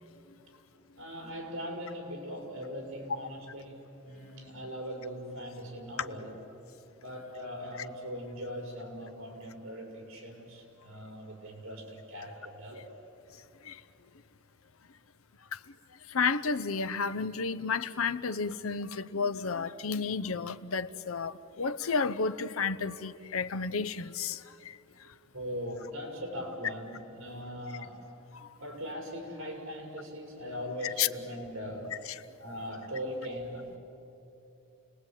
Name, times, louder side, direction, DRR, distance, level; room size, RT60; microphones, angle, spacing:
voice 1, 1.0-6.4 7.0-12.9 25.3-28.1 28.6-32.0 32.4-33.8, equal, 65° right, 1 dB, 6.0 m, -40 dB
voice 2, 16.1-24.8 30.8-31.1, left 5 dB, 85° left, 13 dB, 0.8 m, -31 dB
29.5 x 20.0 x 9.1 m, 2.9 s
head